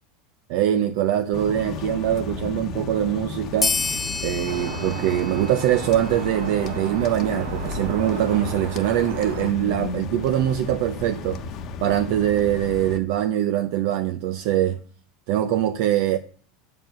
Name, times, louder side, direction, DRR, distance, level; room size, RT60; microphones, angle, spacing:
voice 1, 0.5-3.8 4.2-11.4 11.8-14.8 15.3-16.2, right 11 dB, 65° right, 0.7 m, -23 dB
sound 1, 1.3-13.0, left 4 dB, 45° left, 1.1 m, -34 dB
sound 2, 3.6-6.6, left 4 dB, 15° left, 0.8 m, -29 dB
sound 3, 4.5-9.5, right 7 dB, 80° right, 1.4 m, -35 dB
7.6 x 4.8 x 6.3 m
supercardioid pair, 110°, 0 cm